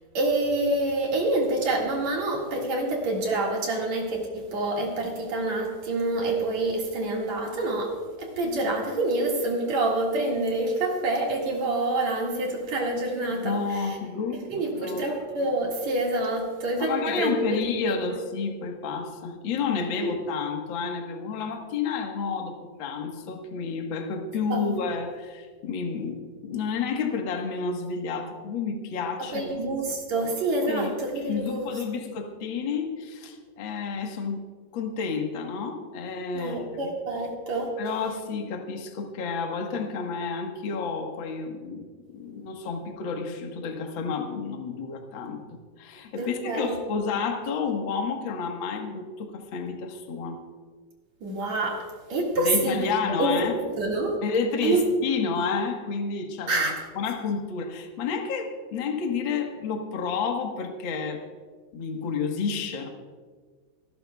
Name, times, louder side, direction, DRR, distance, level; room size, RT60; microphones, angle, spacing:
voice 1, 0.1-7.9 8.2-14.0 14.5-16.9 17.2-17.3 17.9-18.2 20.0-20.1 24.5-24.8 29.3-31.7 36.3-37.7 46.2-46.8 51.2-51.8 52.1-52.9 53.2-53.5 53.8-54.2 54.6-54.8 56.5-56.7, right 2 dB, 55° right, -2 dB, 3.1 m, -27 dB
voice 2, 13.3-15.1 16.8-29.5 30.2-30.3 30.7-34.4 34.7-36.9 37.8-45.4 45.8-50.4 52.4-53.6 54.2-56.7 56.9-61.2 61.7-62.9, left 5 dB, 50° left, 2 dB, 1.5 m, -30 dB
27.0 x 12.5 x 2.3 m, 1.5 s
omnidirectional pair, 4.0 m